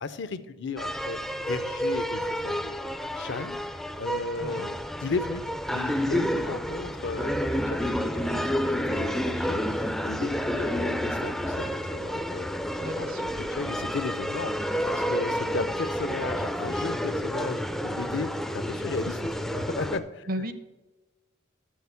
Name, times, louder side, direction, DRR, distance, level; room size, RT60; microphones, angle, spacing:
voice 1, 0.0-1.2 1.5-2.8 3.1-5.4 5.7-12.5 12.8-18.3 18.5-20.3, left 4 dB, 60° left, 12 dB, 0.5 m, -35 dB
sound 1, 0.8-20.0, equal, ahead, 0.4 m, -30 dB
voice 2, 12.8-13.4 20.3-20.5, equal, 45° right, 11 dB, 0.6 m, -34 dB
6.4 x 6.3 x 6.9 m, 1.1 s
head